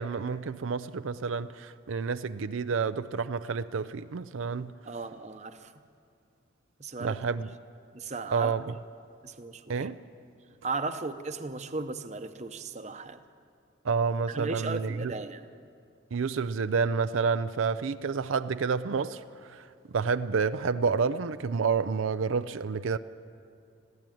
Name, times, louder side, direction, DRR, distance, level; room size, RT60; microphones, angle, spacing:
voice 1, 0.0-4.7 7.0-7.5 8.3-8.6 9.7-10.0 13.8-15.1 16.1-19.6 19.9-23.0, right 5 dB, 85° right, 0.5 m, -29 dB
voice 2, 4.8-5.7 6.8-7.2 7.9-8.5 9.2-9.9 10.6-13.2 14.3-15.5, right 3 dB, 35° right, 0.8 m, -36 dB
21.0 x 15.5 x 9.2 m
head